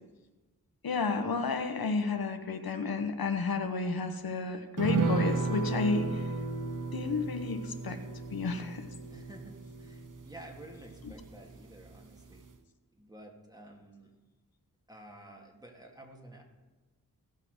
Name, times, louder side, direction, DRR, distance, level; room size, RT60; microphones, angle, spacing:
voice 1, 0.8-6.3 6.9-8.0 8.3-8.9 11.0-11.1, left 4 dB, 80° left, 7 dB, 1.1 m, -31 dB
sound 1, 4.8-11.6 11.9-12.0 12.3-12.5, right 4 dB, 60° right, 0.9 m, -34 dB
voice 2, 9.1-9.5 9.8-12.4 13.0-14.1 14.9-16.4, right 1 dB, 10° right, 1 dB, 2.0 m, -51 dB
16.5 x 5.7 x 6.4 m, 1.2 s
wide cardioid pair, 90°, 36 cm